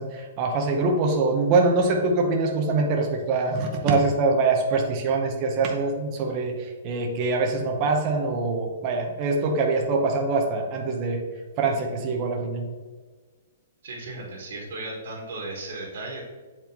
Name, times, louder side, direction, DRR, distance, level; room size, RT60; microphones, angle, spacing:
voice 1, 0.0-11.2 11.6-12.6, right 3 dB, 25° right, 1 dB, 0.7 m, -24 dB
voice 2, 13.8-16.2, right 2 dB, 60° right, -3 dB, 1.5 m, -35 dB
7.8 x 4.4 x 2.8 m, 1.4 s
hypercardioid pair, 170°, 0 cm